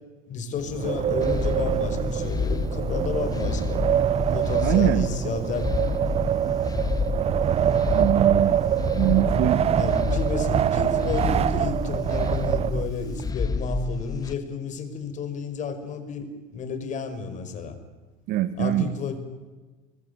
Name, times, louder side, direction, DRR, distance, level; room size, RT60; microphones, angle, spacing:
voice 1, 0.3-3.8 4.3-5.8 8.6-8.8 9.7-17.8 18.6-19.2, left 5 dB, 45° left, 8 dB, 5.2 m, -32 dB
Wind, 0.6-13.2, right 10 dB, 35° right, 0.7 m, -25 dB
sound 1, 1.2-14.3, left 5 dB, 20° left, 1.1 m, -29 dB
voice 2, 4.6-5.1 8.0-8.5 8.9-9.6 18.3-18.9, right 13 dB, 55° right, 14 dB, 1.4 m, -23 dB
24.5 x 22.0 x 9.6 m, 1.3 s
supercardioid pair, 95°, 18 cm